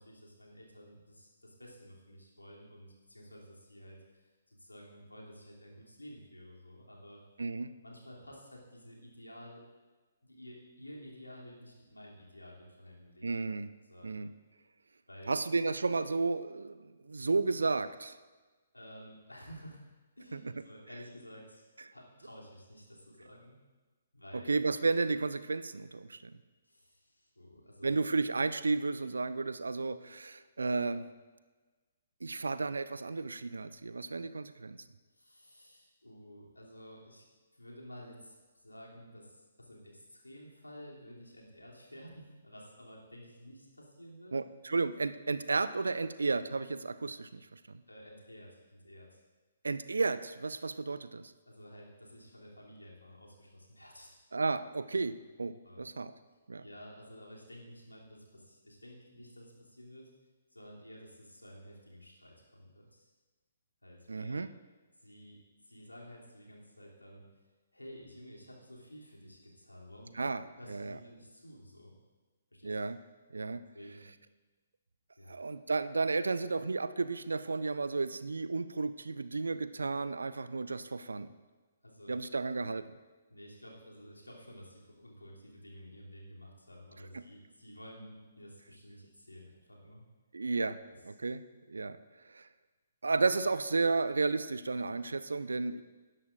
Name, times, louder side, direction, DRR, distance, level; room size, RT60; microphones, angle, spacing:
voice 1, 0.0-7.2 7.8-9.6 10.2-13.3 13.8-14.1 15.1-15.3 18.7-19.8 20.2-21.6 21.9-23.5 24.1-24.5 26.6-27.9 35.1-37.2 37.5-44.3 47.9-49.2 51.4-54.1 55.6-55.8 56.6-60.1 60.5-63.1 63.8-64.3 65.0-65.4 65.6-67.2 67.7-70.1 70.6-71.9 72.5-72.8 73.7-74.1 75.2-75.4 81.8-82.1 83.3-90.0, equal, 80° left, -3 dB, 2.8 m, -52 dB
voice 2, 7.4-7.7 13.2-13.7 14.0-14.3 15.3-18.2 20.3-20.4 24.3-26.3 27.8-31.0 32.2-34.8 44.3-47.8 49.6-51.3 54.3-56.1 56.5-56.6 64.1-64.5 70.1-71.0 72.6-73.0 73.3-73.6 75.3-81.3 82.1-82.8 87.1-87.2 90.3-90.8 91.0-91.4 91.7-92.0 92.2-92.5 93.0-95.8, right 3 dB, 70° right, 13 dB, 0.5 m, -33 dB
19.0 x 11.0 x 2.5 m, 1.3 s
figure-of-eight pair, 130°, 0 cm